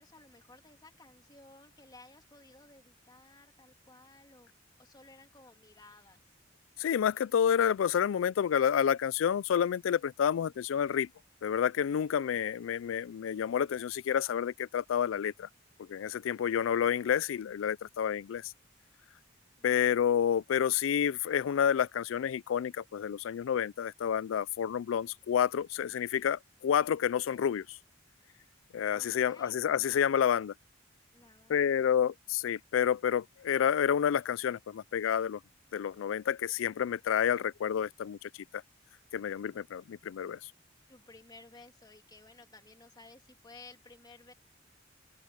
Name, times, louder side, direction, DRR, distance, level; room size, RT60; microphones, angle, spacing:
voice 1, 0.0-4.5 4.8-6.2 28.9-29.7 31.1-32.2 40.9-44.3, left 3 dB, 20° left, 2.8 m, -56 dB
voice 2, 6.8-11.1 11.4-15.5 15.8-18.4 19.6-27.8 28.7-30.5 31.5-35.4 35.7-38.6 39.1-40.4, left 8 dB, 90° left, 0.3 m, -29 dB
open air
head